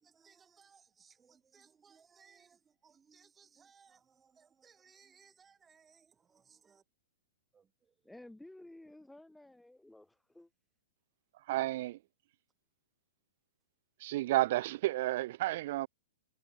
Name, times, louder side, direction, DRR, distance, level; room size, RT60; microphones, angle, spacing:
voice 1, 0.0-6.8 7.5-8.1, right 6 dB, 15° right, 4.6 m, -64 dB
voice 2, 8.0-10.5, left 1 dB, 5° left, 1.3 m, -54 dB
voice 3, 11.5-12.0 14.0-15.9, right 16 dB, 50° right, 0.4 m, -31 dB
hypercardioid pair, 155°, 0 cm